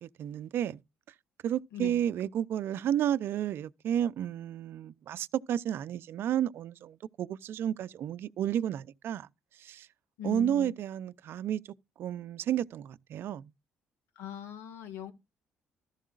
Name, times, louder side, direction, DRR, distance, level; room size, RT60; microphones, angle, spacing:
voice 1, 0.0-0.8 1.4-9.3 9.6-9.9 10.2-11.6 12.0-13.5, right 10 dB, 65° right, 0.6 m, -32 dB
voice 2, 10.2-10.7 14.2-15.1, left 11 dB, 75° left, 1.9 m, -40 dB
14.5 x 13.0 x 2.5 m
supercardioid pair, 65°, 4 cm